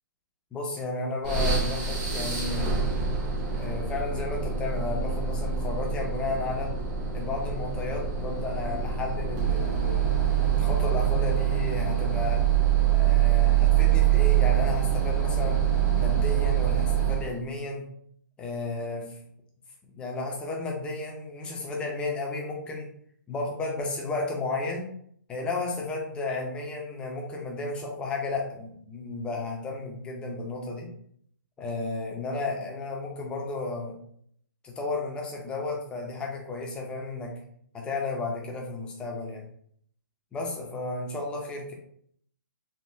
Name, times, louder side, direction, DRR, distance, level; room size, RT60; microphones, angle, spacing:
voice 1, 0.5-2.8 3.5-6.7 7.1-10.1 10.5-12.4 12.9-15.6 16.0-17.8 18.4-19.2 19.8-22.9 23.3-24.9 25.3-30.9 31.6-33.9 34.6-37.3 37.7-39.5 40.3-41.7, left 3 dB, 10° left, 0 dB, 0.4 m, -33 dB
sound 1, 1.2-17.4, right 9 dB, 30° right, 0.8 m, -25 dB
3.4 x 2.1 x 2.5 m, 0.66 s
hypercardioid pair, 150°, 11 cm